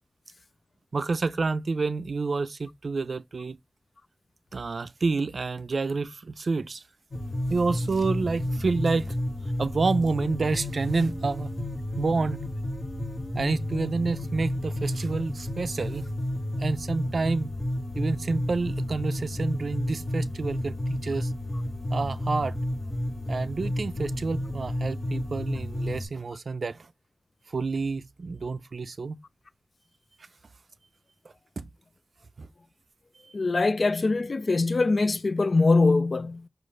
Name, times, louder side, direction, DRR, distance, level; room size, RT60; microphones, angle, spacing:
voice 1, 0.9-3.6 4.5-6.8 7.5-9.2 9.6-11.5 12.0-12.4 13.3-16.1 16.6-17.5 18.0-21.3 21.9-22.6 23.3-26.9 27.5-29.2 31.6-31.7 32.4-32.5, right 4 dB, 80° right, 0.3 m, -28 dB
sound 1, 7.1-26.0, left 1 dB, 40° left, 1.5 m, -31 dB
voice 2, 33.3-36.4, left 3 dB, 65° left, 0.3 m, -23 dB
6.3 x 2.5 x 3.1 m
wide cardioid pair, 75°, 0 cm